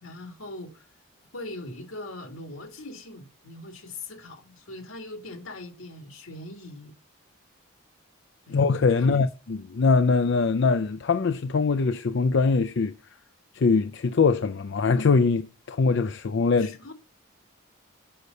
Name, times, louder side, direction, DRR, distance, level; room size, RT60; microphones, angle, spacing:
voice 1, 0.0-0.9 1.3-6.9 8.5-8.6 9.0-9.2 16.6-16.9, left 2 dB, 80° left, 2.1 m, -41 dB
voice 2, 8.5-12.9 13.5-16.9, left 4 dB, 60° left, 0.4 m, -22 dB
6.6 x 6.5 x 5.4 m
head